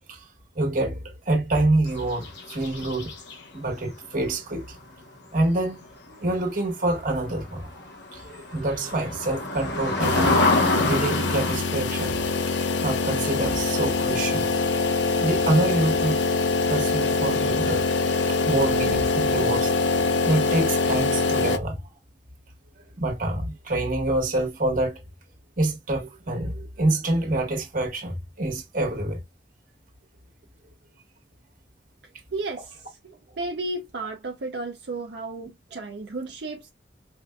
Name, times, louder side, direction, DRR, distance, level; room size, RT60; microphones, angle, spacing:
voice 1, 0.5-3.1 3.5-4.8 5.3-5.8 6.0-7.7 8.1-12.2 12.8-14.4 15.2-16.2 16.7-21.8 23.0-25.0 25.6-29.2, right 2 dB, 50° right, 1.4 m, -26 dB
sound 1, 1.9-3.4 6.9-7.0 7.5-7.6 7.8-11.6, left 2 dB, 70° left, 1.1 m, -26 dB
sound 2, 10.0-21.6, left 3 dB, 90° left, 0.6 m, -24 dB
voice 2, 32.3-36.7, right 2 dB, 70° right, 0.6 m, -33 dB
5.3 x 2.5 x 2.3 m
head